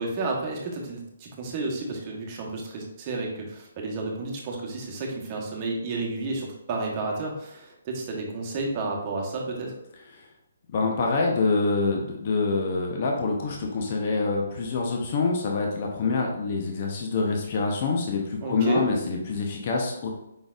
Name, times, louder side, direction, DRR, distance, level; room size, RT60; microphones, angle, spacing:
voice 1, 0.0-9.7 18.4-18.8, right 3 dB, 30° right, -1 dB, 1.1 m, -31 dB
voice 2, 10.7-20.1, left 3 dB, 45° left, 0 dB, 0.8 m, -26 dB
5.2 x 3.9 x 2.5 m, 0.84 s
hypercardioid pair, 150°, 0 cm